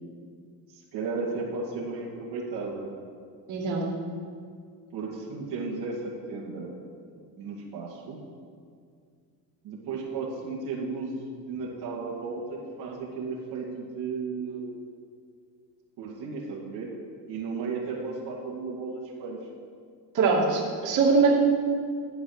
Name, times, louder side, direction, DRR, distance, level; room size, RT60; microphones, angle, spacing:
voice 1, 0.7-2.9 4.9-6.8 7.0-7.1 7.4-8.2 9.6-14.8 16.0-16.9 17.3-19.4, right 4 dB, 65° right, -4 dB, 2.3 m, -34 dB
voice 2, 3.5-3.9 20.1-21.3, right 4 dB, 45° right, -3 dB, 2.5 m, -22 dB
11.5 x 8.0 x 6.5 m, 2.1 s
cardioid pair, 145°, 42 cm